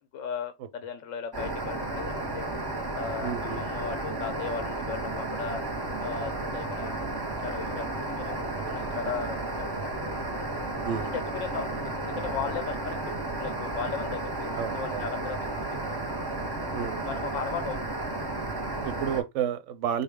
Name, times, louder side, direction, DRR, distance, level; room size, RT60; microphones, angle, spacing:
voice 1, 0.1-2.4 2.9-5.6 6.0-7.1 7.4-9.9 11.3-13.0 13.4-14.5 14.7-15.8 16.1-16.2 17.0-18.0, left 6 dB, 70° left, 0.9 m, -37 dB
sound 1, 1.3-19.2, right 2 dB, 20° right, 0.7 m, -33 dB
voice 2, 3.2-3.6 8.6-9.1 10.8-11.1 14.5-15.0 16.7-17.3 18.5-20.0, right 8 dB, 70° right, 0.8 m, -32 dB
3.9 x 2.4 x 3.4 m
omnidirectional pair, 1.5 m